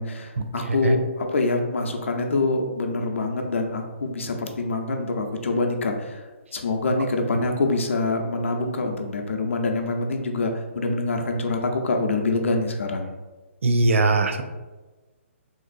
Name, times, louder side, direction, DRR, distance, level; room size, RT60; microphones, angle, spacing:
voice 1, 0.0-6.2 6.5-13.1, left 2 dB, 65° left, 3 dB, 0.5 m, -25 dB
voice 2, 13.6-14.4, right 2 dB, 70° right, 6 dB, 0.4 m, -20 dB
3.6 x 2.6 x 2.4 m, 1.2 s
hypercardioid pair, 170°, 7 cm